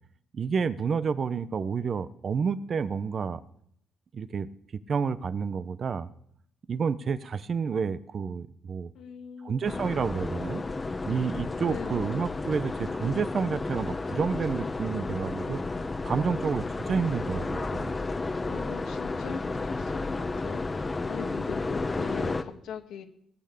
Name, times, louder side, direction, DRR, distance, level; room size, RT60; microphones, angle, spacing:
voice 1, 0.3-3.4 4.1-6.1 6.7-8.9 9.4-10.6 11.1-15.6 16.0-17.9, right 6 dB, 45° right, 15 dB, 0.8 m, -30 dB
voice 2, 8.9-9.9 11.7-12.1 18.4-23.0, left 8 dB, 75° left, 6 dB, 1.8 m, -41 dB
sound 1, 9.6-22.4, left 3 dB, 25° left, 1.0 m, -32 dB
17.5 x 6.6 x 8.3 m, 0.70 s
cardioid pair, 90°, 0 cm